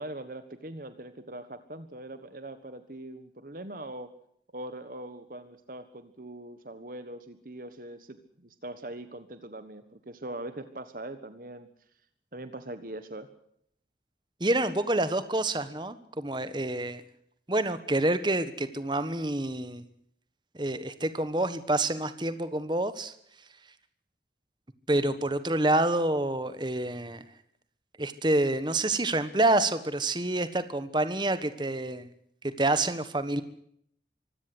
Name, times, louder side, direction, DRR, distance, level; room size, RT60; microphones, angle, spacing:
voice 1, 0.0-4.1 4.5-11.7 12.3-13.3, right 1 dB, 50° right, 10 dB, 1.4 m, -41 dB
voice 2, 14.4-17.0 17.5-19.8 20.5-23.1 24.9-27.2 28.0-32.1 32.6-33.4, right 2 dB, 25° right, 12 dB, 1.3 m, -27 dB
24.5 x 16.5 x 7.8 m, 0.69 s
head